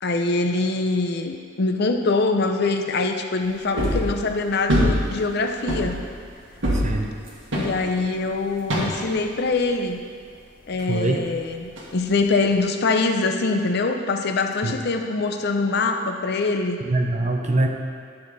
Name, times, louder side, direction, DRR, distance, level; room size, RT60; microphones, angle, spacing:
voice 1, 0.0-6.0 7.5-10.0 10.7-16.8, left 3 dB, 60° left, 6 dB, 0.6 m, -23 dB
sound 1, 3.8-4.2 4.7-5.4 5.7-8.2 8.7-9.2 11.8-11.9, equal, 70° right, 1.8 m, -23 dB
voice 2, 6.7-7.1 10.8-11.2 14.6-14.7 16.8-17.7, right 2 dB, 40° right, 2 dB, 0.9 m, -23 dB
11.5 x 6.5 x 4.1 m, 2.3 s
head